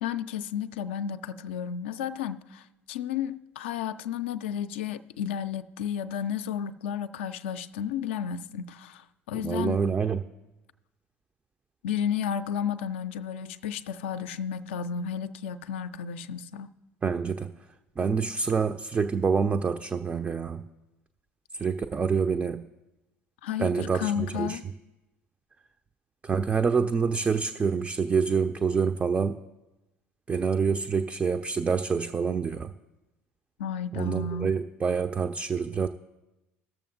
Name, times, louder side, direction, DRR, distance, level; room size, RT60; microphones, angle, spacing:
voice 1, 0.0-9.8 11.8-16.7 23.4-24.6 33.6-34.5, left 8 dB, 65° left, 0.4 m, -32 dB
voice 2, 9.3-10.2 17.0-17.5 18.0-20.6 21.5-22.7 23.6-24.7 26.2-29.4 30.3-32.7 33.9-35.9, right 5 dB, 20° right, 0.3 m, -27 dB
19.5 x 6.9 x 2.5 m
figure-of-eight pair, 65°, 7 cm